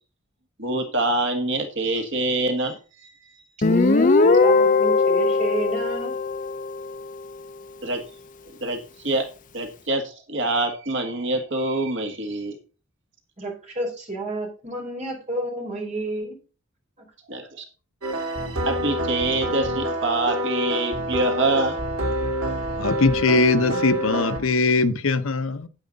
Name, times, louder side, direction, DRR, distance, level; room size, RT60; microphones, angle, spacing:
voice 1, 0.6-2.8 3.0-3.1 3.8-4.1 7.8-8.0 8.6-9.2 9.5-12.6 17.3-17.6 18.1-18.2 18.6-21.8, right 2 dB, 55° right, 1.7 m, -25 dB
Guitar, 3.6-7.1, left 3 dB, 35° left, 0.5 m, -19 dB
voice 2, 3.6-6.2 13.4-16.4, right 2 dB, 35° right, 4.3 m, -30 dB
sound 1, 18.0-24.4, equal, 80° right, 2.6 m, -27 dB
voice 3, 22.8-25.7, left 3 dB, 70° left, 0.8 m, -21 dB
9.7 x 9.1 x 4.0 m
head